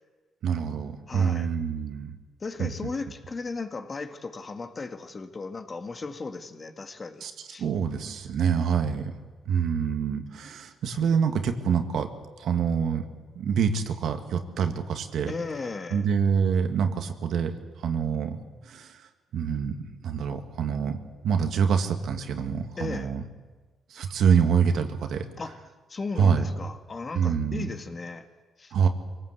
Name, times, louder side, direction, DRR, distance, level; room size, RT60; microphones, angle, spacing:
voice 1, 0.4-2.1 2.6-2.7 7.2-7.3 7.6-9.0 9.5-12.1 12.4-13.0 13.4-15.3 15.9-17.5 17.8-18.4 18.7-19.0 19.3-19.7 20.0-21.0 21.2-23.2 23.9-25.3 26.2-26.5 27.1-27.7 28.7-28.9, right 7 dB, 70° right, 6 dB, 1.9 m, -26 dB
voice 2, 1.1-1.5 2.4-7.6 9.7-9.8 15.3-16.1 22.8-23.1 25.4-25.6 25.9-28.3 28.6-28.7, left 4 dB, 35° left, 7 dB, 1.8 m, -36 dB
24.0 x 18.0 x 8.2 m, 1.3 s
cardioid pair, 90°, 0 cm